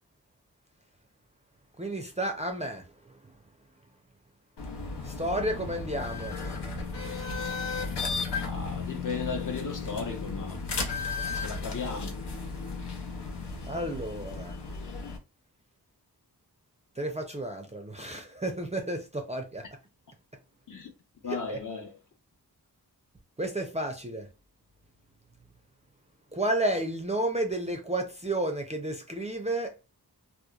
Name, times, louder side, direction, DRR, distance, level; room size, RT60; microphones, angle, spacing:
voice 1, 1.8-3.2 5.0-6.4 13.6-14.5 17.0-19.7 21.3-21.6 23.4-24.3 26.3-29.7, right 1 dB, 20° right, 0.4 m, -32 dB
sound 1, 4.6-15.2, left 4 dB, 85° left, 0.7 m, -35 dB
voice 2, 8.3-10.6 11.3-12.2 20.7-20.9 21.2-21.9, left 5 dB, 50° left, 0.7 m, -36 dB
2.9 x 2.1 x 2.3 m
wide cardioid pair, 80°, 39 cm